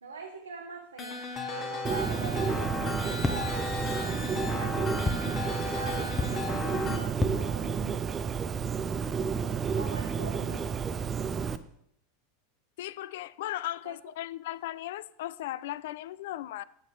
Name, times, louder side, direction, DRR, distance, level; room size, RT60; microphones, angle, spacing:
voice 1, 0.0-5.5 5.7-8.1 9.7-10.7 13.8-14.0, right 4 dB, 80° right, 0.8 m, -43 dB
sound 1, 1.0-7.0, left 3 dB, 30° left, 1.4 m, -35 dB
Bird, 1.8-11.6, right 6 dB, 25° right, 0.5 m, -31 dB
sound 2, 3.2-3.8 5.1-5.5 6.2-6.7 7.2-7.8, left 3 dB, 15° left, 0.7 m, -33 dB
voice 2, 12.8-16.6, left 14 dB, 60° left, 0.3 m, -37 dB
7.6 x 7.4 x 4.3 m
figure-of-eight pair, 85°, 0 cm